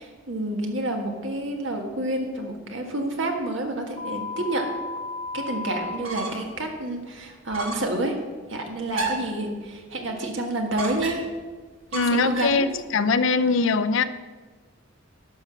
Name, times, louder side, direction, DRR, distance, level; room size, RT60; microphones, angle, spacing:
voice 1, 0.0-4.7 5.3-8.2 8.5-11.2 11.9-12.7, right 1 dB, 65° right, 2 dB, 1.7 m, -29 dB
sound 1, 4.0-6.0, left 3 dB, 25° left, 1.2 m, -33 dB
sound 2, 6.0-6.6 6.9-7.0 7.5-8.0 8.9-9.4 10.8-11.4 11.9-12.6, right 2 dB, 80° right, 2.2 m, -32 dB
voice 2, 11.9-14.0, left 4 dB, 65° left, 13 dB, 0.5 m, -22 dB
11.5 x 5.7 x 7.0 m, 1.4 s
head